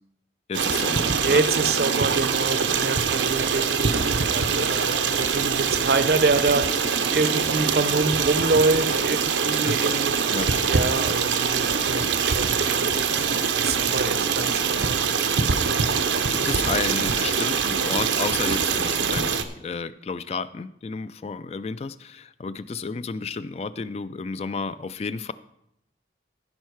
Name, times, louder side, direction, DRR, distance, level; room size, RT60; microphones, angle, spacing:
voice 1, 0.5-1.4 9.7-9.9 10.3-10.5 16.0-25.3, left 4 dB, 35° left, 14 dB, 0.3 m, -32 dB
Stream, 0.5-19.4, right 6 dB, 85° right, 0.7 m, -23 dB
voice 2, 1.2-6.7 7.1-10.1 10.7-13.0 13.5-15.0, right 3 dB, 55° right, 12 dB, 0.6 m, -26 dB
15.0 x 5.6 x 4.6 m, 0.78 s
head